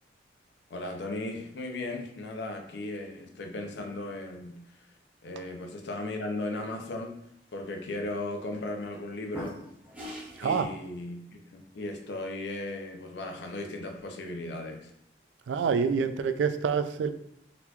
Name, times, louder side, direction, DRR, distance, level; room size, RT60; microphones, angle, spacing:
voice 1, 0.7-4.9 5.2-7.2 7.5-9.6 10.4-11.2 11.5-14.9, left 2 dB, 75° left, 3 dB, 0.5 m, -36 dB
sound 1, 8.9-9.0 9.3-10.6, equal, 10° right, 0.8 m, -41 dB
voice 2, 15.5-17.1, right 6 dB, 85° right, 9 dB, 0.3 m, -27 dB
4.0 x 2.8 x 2.3 m, 0.72 s
head